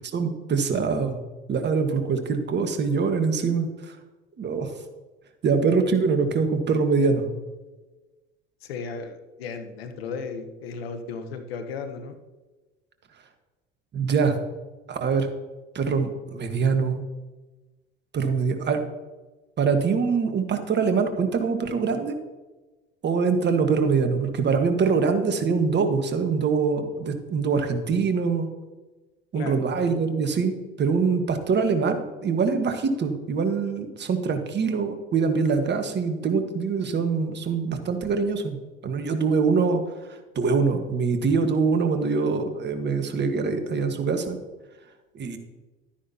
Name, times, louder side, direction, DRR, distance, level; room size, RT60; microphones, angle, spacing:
voice 1, 0.1-1.2 1.5-4.0 4.4-4.7 5.4-7.3 13.9-14.3 14.9-15.3 15.7-17.0 18.1-18.8 19.6-22.2 23.0-28.5 29.3-39.8 40.1-44.4 45.1-45.4, right 5 dB, 35° right, 7 dB, 1.5 m, -24 dB
voice 2, 8.6-12.2 29.3-29.6, left 5 dB, 80° left, 7 dB, 1.1 m, -35 dB
12.5 x 10.0 x 2.9 m, 1.2 s
hypercardioid pair, 70°, 30 cm